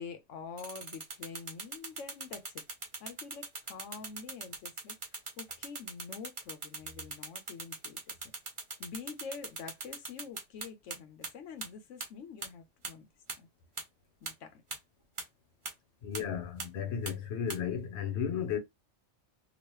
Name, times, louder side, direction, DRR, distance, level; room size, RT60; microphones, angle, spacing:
voice 1, 0.0-2.6 3.0-5.0 5.4-8.1 8.8-13.1 13.4-13.5 14.2-14.6, left 5 dB, 90° left, 1.0 m, -46 dB
sound 1, 0.6-11.0 11.2-11.3 11.6-11.7 12.0-12.1 12.4-12.5 12.8-12.9 13.3-13.4 13.8-13.9 14.3-14.4 14.7-14.8 15.2-15.3 15.7-15.8 16.1-16.2 16.6-16.7 17.1-17.2 17.5-17.6, right 3 dB, 30° right, 0.7 m, -39 dB
voice 2, 16.0-18.6, left 8 dB, 65° left, 1.0 m, -34 dB
2.9 x 2.4 x 3.1 m
omnidirectional pair, 1.2 m